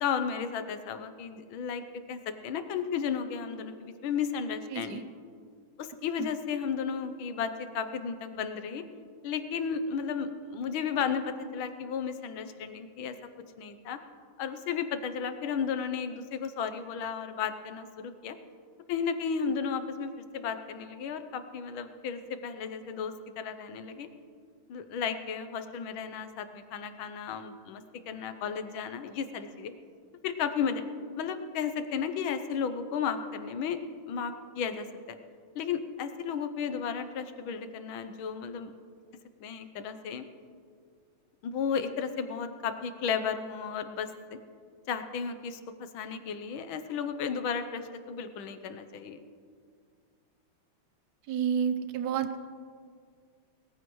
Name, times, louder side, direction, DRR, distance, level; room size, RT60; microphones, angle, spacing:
voice 1, 0.0-1.8 2.1-5.1 5.8-8.8 9.2-13.1 13.6-14.0 14.4-18.4 18.9-20.1 20.3-24.1 24.7-29.7 30.2-30.8 31.2-33.8 34.1-35.2 35.5-38.7 39.4-40.2 41.4-44.1 44.9-45.6 45.9-49.2, left 6 dB, 70° left, 9 dB, 1.5 m, -34 dB
voice 2, 4.7-5.0 6.2-6.3 51.3-52.5, right 8 dB, 75° right, 10 dB, 0.9 m, -30 dB
20.5 x 14.5 x 3.1 m, 2.1 s
omnidirectional pair, 2.4 m